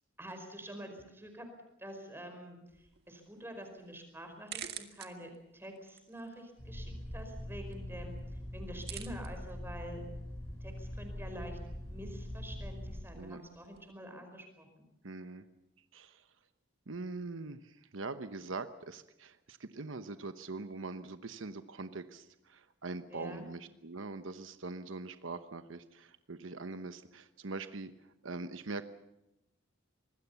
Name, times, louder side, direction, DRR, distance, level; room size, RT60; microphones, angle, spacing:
voice 1, 0.2-1.5 1.8-2.6 3.1-8.2 8.5-10.0 10.6-11.6 11.9-14.8 23.1-23.4, equal, 10° right, 5 dB, 5.0 m, -47 dB
sound 1, 2.7-13.9, right 10 dB, 55° right, 1.8 m, -53 dB
sound 2, 6.6-13.0, left 1 dB, 15° left, 7.7 m, -43 dB
voice 2, 15.0-15.4 15.9-16.2 16.9-27.9 28.2-28.9, right 3 dB, 75° right, 10 dB, 1.0 m, -43 dB
25.0 x 20.0 x 7.0 m, 0.85 s
head